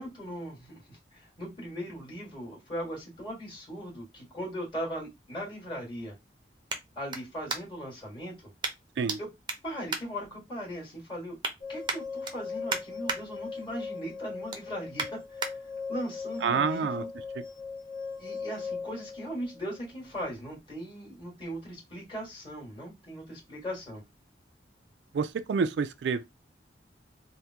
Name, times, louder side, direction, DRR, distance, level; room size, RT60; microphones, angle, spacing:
voice 1, 0.0-6.1 6.9-8.4 9.2-9.3 9.6-11.4 11.7-17.1 18.2-24.0, equal, 30° left, 1.8 m, -39 dB
sound 1, 4.1-8.0 8.6-9.2 9.4-10.8 11.1-11.5 11.8-13.2 13.6-13.9 14.2-15.5 16.1-16.2, right 4 dB, 25° right, 0.6 m, -36 dB
sound 2, 11.6-20.3, left 4 dB, 55° left, 0.9 m, -39 dB
voice 2, 16.4-17.0 25.1-26.2, right 5 dB, 70° right, 0.3 m, -28 dB
3.5 x 2.1 x 2.8 m
head